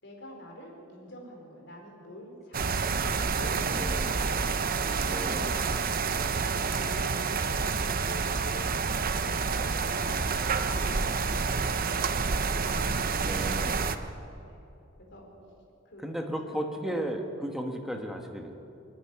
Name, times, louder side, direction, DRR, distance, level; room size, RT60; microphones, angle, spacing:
voice 1, 0.0-3.0 3.3-4.3 4.9-5.7 6.0-10.4 10.7-12.9 14.4-14.6 15.0-15.3 15.8-16.1 16.5-16.6 16.8-17.0, equal, 60° left, 0 dB, 4.8 m, -46 dB
sound 1, 2.5-14.0, right 4 dB, 45° right, 0.8 m, -28 dB
voice 2, 3.7-4.1 5.0-5.5 13.2-13.8 16.0-18.5, right 1 dB, ahead, 3 dB, 1.5 m, -35 dB
25.5 x 10.5 x 9.8 m, 2.8 s
head